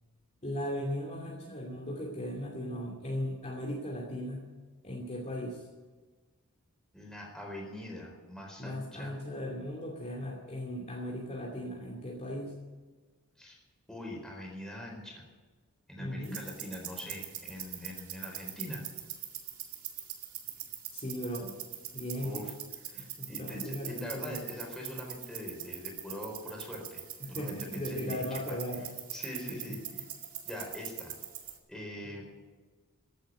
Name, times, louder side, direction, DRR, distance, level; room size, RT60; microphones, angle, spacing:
voice 1, 0.4-4.4 4.8-5.7 8.6-12.6 16.0-16.4 20.9-21.5 21.9-22.4 22.9-24.4 27.2-28.9 29.5-29.8, equal, 30° left, -2 dB, 2.6 m, -37 dB
voice 2, 6.9-9.1 13.4-13.6 13.9-15.2 15.9-18.8 22.2-22.5 22.8-27.0 27.3-28.6 29.1-29.8 30.4-31.2 31.7-32.2, left 1 dB, 5° left, -1 dB, 4.5 m, -43 dB
sound 1, 16.2-31.6, right 11 dB, 70° right, 2.2 m, -43 dB
15.5 x 9.1 x 9.5 m, 1.4 s
head